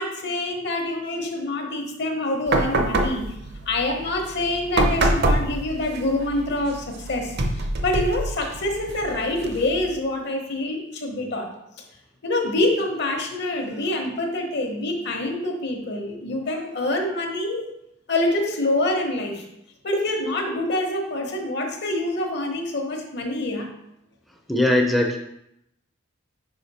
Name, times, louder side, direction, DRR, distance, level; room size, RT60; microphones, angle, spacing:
voice 1, 0.0-3.4 3.7-11.5 12.2-17.7 18.1-19.4 19.8-23.7, left 1 dB, 55° left, 2 dB, 1.0 m, -26 dB
sound 1, 2.5-9.9, right 2 dB, 55° right, 0.7 m, -26 dB
voice 2, 24.5-25.2, left 1 dB, ahead, 2 dB, 0.5 m, -19 dB
5.3 x 4.9 x 4.1 m, 0.80 s
head